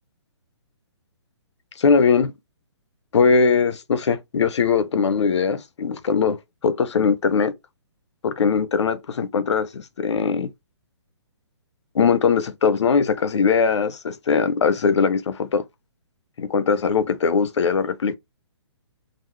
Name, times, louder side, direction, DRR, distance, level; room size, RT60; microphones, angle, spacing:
voice 1, 1.8-2.3 3.1-7.5 8.2-10.5 11.9-15.6 16.4-18.2, left 5 dB, 80° left, 0.6 m, -20 dB
3.7 x 2.0 x 3.1 m
hypercardioid pair, 175°, 15 cm